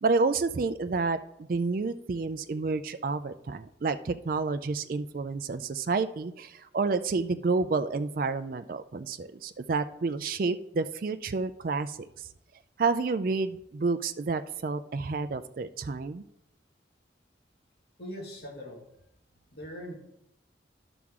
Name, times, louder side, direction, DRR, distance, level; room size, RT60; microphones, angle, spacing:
voice 1, 0.0-12.3 12.8-16.2, right 4 dB, 50° right, 10 dB, 0.4 m, -29 dB
voice 2, 18.0-18.8 19.5-19.9, equal, 60° left, -1 dB, 1.9 m, -40 dB
11.0 x 5.9 x 3.6 m, 0.80 s
head